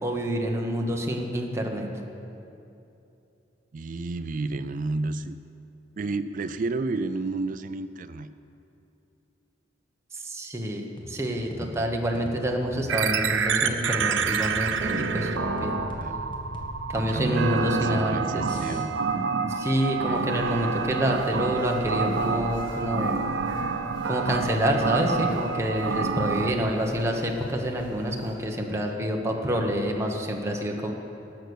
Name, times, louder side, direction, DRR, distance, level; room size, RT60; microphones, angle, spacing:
voice 1, 0.0-1.9 10.1-15.8 16.9-18.8 19.5-23.2 24.0-30.9, equal, 15° right, 1 dB, 1.1 m, -27 dB
voice 2, 3.7-5.4 6.0-8.3 15.9-16.3 17.0-18.9, right 3 dB, 45° right, 12 dB, 0.4 m, -31 dB
sound 1, 11.0-18.8, left 1 dB, 25° left, 1.6 m, -41 dB
sound 2, 12.9-26.5, right 5 dB, 85° right, 0.6 m, -28 dB
sound 3, 20.2-28.4, equal, 50° left, 2.6 m, -46 dB
18.0 x 6.6 x 6.4 m, 2.8 s
head